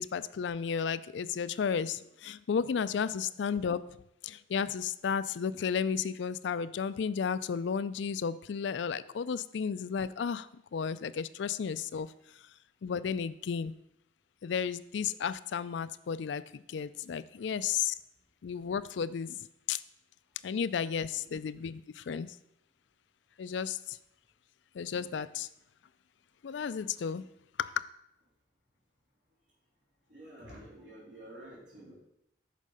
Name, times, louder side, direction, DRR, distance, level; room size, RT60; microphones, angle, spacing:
voice 1, 0.0-3.8 4.2-12.1 12.8-13.7 14.4-17.9 18.4-19.8 20.4-22.3 23.4-24.0 24.7-25.5 26.4-27.2 27.6-27.8, left 6 dB, 75° left, 15 dB, 0.4 m, -33 dB
voice 2, 30.1-31.9, right 1 dB, 80° right, -6 dB, 3.5 m, -50 dB
8.4 x 5.5 x 5.4 m, 0.79 s
head